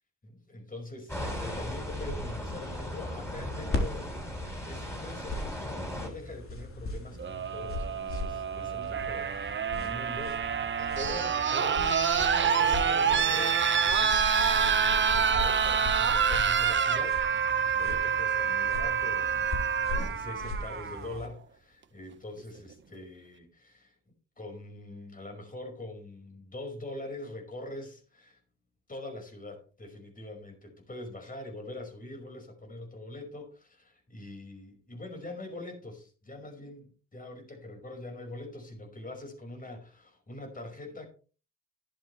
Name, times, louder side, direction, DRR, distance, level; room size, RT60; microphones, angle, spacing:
voice 1, 0.2-4.1 4.5-12.0 12.4-19.5 19.9-24.0 24.4-28.4 28.9-41.1, left 2 dB, 30° left, 3 dB, 5.2 m, -43 dB
sound 1, 1.1-6.1, equal, 10° left, 7.0 m, -37 dB
sound 2, 3.7-21.3, left 2 dB, 45° left, 3.8 m, -39 dB
sound 3, 7.2-21.2 22.4-22.5, right 7 dB, 40° right, 1.2 m, -27 dB
13.0 x 11.0 x 3.2 m, 0.37 s
cardioid pair, 90°, 30 cm